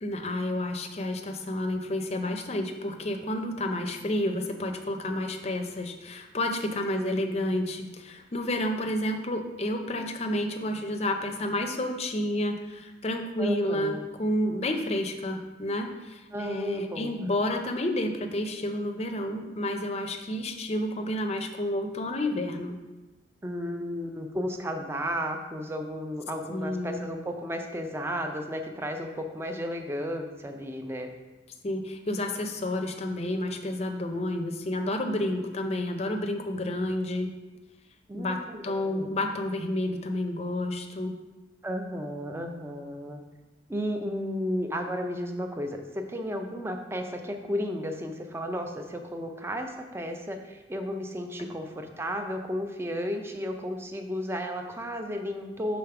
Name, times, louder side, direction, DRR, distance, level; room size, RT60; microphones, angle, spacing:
voice 1, 0.0-22.8 26.5-27.0 31.6-37.3 38.1-41.2 51.4-51.5, left 1 dB, 35° left, 5 dB, 0.6 m, -30 dB
voice 2, 7.0-7.4 13.4-14.1 16.3-17.3 23.4-31.1 35.3-35.7 38.1-39.1 41.6-43.2 43.7-55.8, equal, 15° right, 4 dB, 0.5 m, -33 dB
5.1 x 4.0 x 5.8 m, 1.1 s
head